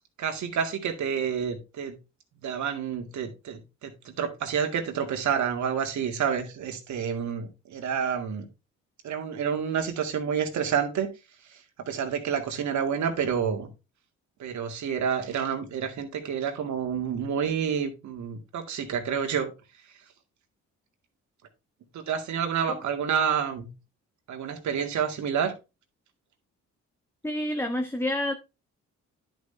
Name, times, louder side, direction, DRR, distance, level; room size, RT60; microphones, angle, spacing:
voice 1, 0.2-1.9 2.4-8.5 9.0-11.1 11.8-13.7 14.4-19.5 21.9-23.7 24.3-25.5, right 7 dB, 70° right, 2.2 m, -29 dB
voice 2, 27.2-28.3, left 1 dB, 10° left, 1.0 m, -28 dB
10.5 x 6.4 x 3.3 m
cardioid pair, 90°, 30 cm